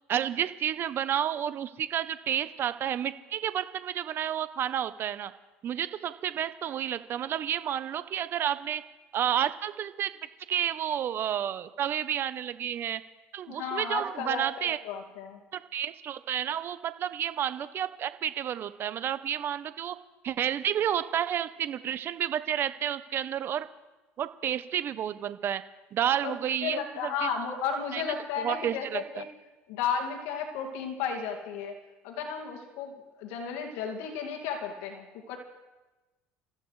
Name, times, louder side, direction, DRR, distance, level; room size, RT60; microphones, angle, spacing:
voice 1, 0.1-5.3 5.6-8.8 9.1-10.1 10.5-13.0 13.3-14.8 15.5-20.0 20.2-23.7 24.2-25.6 25.9-27.3 27.9-28.0 28.4-29.2, right 10 dB, 45° right, 13 dB, 0.8 m, -30 dB
voice 2, 13.5-15.4 26.2-29.3 29.7-31.7 32.0-32.9 33.2-35.4, left 6 dB, 80° left, 2 dB, 2.2 m, -33 dB
28.0 x 14.5 x 3.2 m, 1.1 s
supercardioid pair, 100°, 5 cm